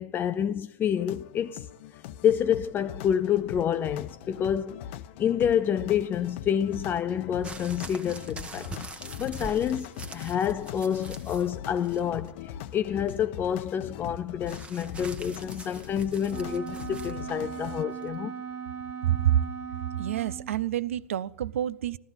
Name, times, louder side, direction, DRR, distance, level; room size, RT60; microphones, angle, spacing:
voice 1, 0.0-1.7 2.2-4.9 5.2-8.7 9.2-18.4, left 9 dB, 30° left, 0.5 m, -28 dB
sound 1, 1.0-17.8, left 10 dB, 60° left, 0.8 m, -41 dB
sound 2, 7.4-11.5 11.8-12.4 14.5-17.2 18.0-18.1, right 3 dB, 15° right, 1.2 m, -43 dB
Wind instrument woodwind instrument, 16.3-20.6, right 7 dB, 40° right, 1.0 m, -38 dB
voice 2, 19.0-19.4 20.0-22.0, right 12 dB, 80° right, 0.5 m, -27 dB
13.5 x 13.5 x 5.6 m
hypercardioid pair, 110°, 7 cm